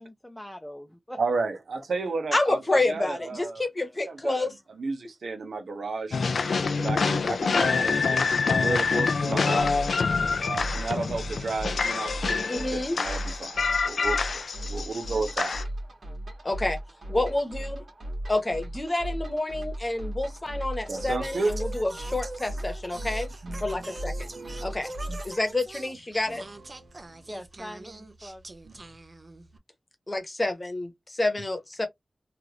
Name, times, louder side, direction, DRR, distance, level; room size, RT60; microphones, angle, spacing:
voice 1, 0.0-1.2 3.2-3.3 17.2-17.4 27.3-28.4, equal, 5° left, 0.5 m, -42 dB
voice 2, 1.2-2.6 2.9-3.7 4.1-4.5 4.8-6.2 6.8-9.7 10.5-15.5 20.9-21.6 22.9-23.1 23.4-24.8 26.3-26.4 26.8-26.9, right 3 dB, 85° right, 0.7 m, -33 dB
voice 3, 2.3-4.5 12.5-13.0 16.4-16.8 17.1-17.8 18.3-23.3 23.6-24.3 24.6-24.9 25.2-26.4 30.1-31.9, left 2 dB, 25° left, 0.9 m, -28 dB
sound 1, 6.1-15.6, left 4 dB, 85° left, 0.4 m, -26 dB
sound 2, 9.6-25.4, right 1 dB, 65° right, 1.5 m, -37 dB
Singing, 20.9-29.6, right 2 dB, 40° right, 0.5 m, -43 dB
3.2 x 2.4 x 2.9 m
wide cardioid pair, 85°, 0 cm